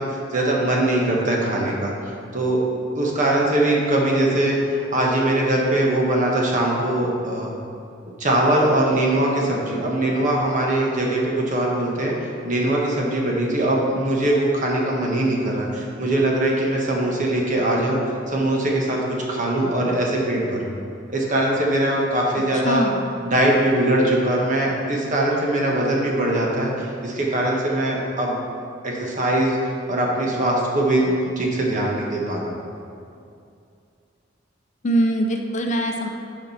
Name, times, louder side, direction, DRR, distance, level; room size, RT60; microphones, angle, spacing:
voice 1, 0.0-2.6 2.9-7.5 8.2-12.1 12.4-18.0 18.3-20.7 21.1-22.9 23.2-28.3 28.8-29.6 29.9-32.5, right 1 dB, 45° right, -2 dB, 1.3 m, -21 dB
voice 2, 22.7-23.0 34.8-36.1, right 1 dB, 40° left, 3 dB, 0.5 m, -22 dB
6.6 x 5.2 x 5.6 m, 2.5 s
head